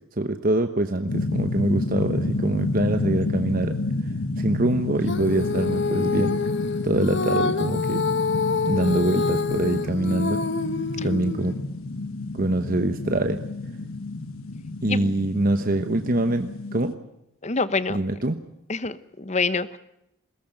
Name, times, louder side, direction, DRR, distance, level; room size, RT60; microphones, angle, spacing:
voice 1, 0.2-3.7 4.4-6.4 6.8-8.0 8.7-10.4 11.0-11.5 12.3-13.4 14.8-16.9 17.9-18.4, right 1 dB, 40° right, 7 dB, 1.0 m, -24 dB
sound 1, 1.1-16.9, left 2 dB, 80° left, 1.2 m, -30 dB
Female singing, 5.0-11.5, left 4 dB, 55° left, 1.1 m, -27 dB
voice 2, 17.4-18.0 18.7-19.8, left 4 dB, 30° left, 15 dB, 0.9 m, -26 dB
22.0 x 18.0 x 9.2 m, 0.83 s
head